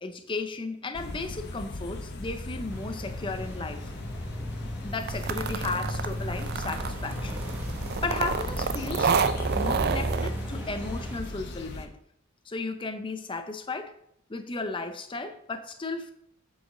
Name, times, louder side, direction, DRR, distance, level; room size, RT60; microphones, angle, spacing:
voice 1, 0.0-3.9 4.8-7.4 8.0-9.1 9.5-11.9 12.5-14.0 14.3-16.1, left 3 dB, 25° left, 7 dB, 0.6 m, -34 dB
sound 1, 0.9-11.9, left 2 dB, 55° left, 0.8 m, -38 dB
sound 2, 2.7-11.2, equal, 10° right, 0.9 m, -36 dB
sound 3, 5.1-10.3, right 5 dB, 50° right, 0.4 m, -30 dB
7.5 x 4.9 x 3.8 m, 0.68 s
head